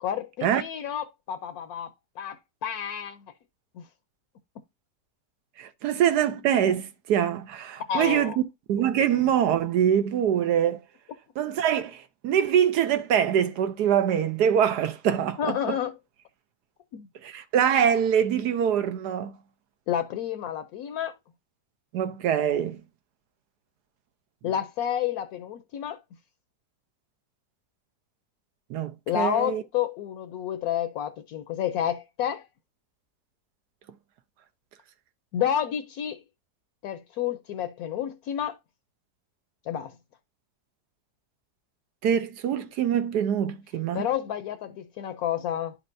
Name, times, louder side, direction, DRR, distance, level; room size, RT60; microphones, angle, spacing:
voice 1, 0.0-3.2 3.8-3.9 7.9-8.4 15.4-15.9 16.9-17.1 19.9-21.1 24.4-26.0 29.1-32.5 35.3-36.2 36.8-38.6 39.7-39.9 43.9-45.8, left 10 dB, 70° left, 1.1 m, -30 dB
voice 2, 5.6-8.3 8.7-10.8 11.4-15.8 17.2-19.3 21.9-22.8 28.7-29.6 42.0-44.1, right 9 dB, 75° right, 1.3 m, -24 dB
11.0 x 4.4 x 2.6 m
omnidirectional pair, 1.7 m